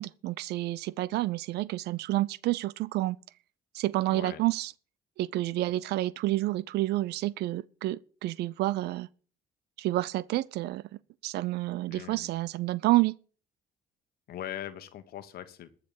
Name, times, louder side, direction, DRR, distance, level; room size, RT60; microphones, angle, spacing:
voice 1, 0.0-3.2 3.7-4.7 5.2-9.1 9.8-10.8 11.2-13.1, right 17 dB, 75° right, 0.5 m, -29 dB
voice 2, 4.1-4.4 11.9-12.3 14.3-15.7, left 11 dB, 65° left, 1.2 m, -40 dB
14.0 x 6.5 x 6.9 m
cardioid pair, 110°, 17 cm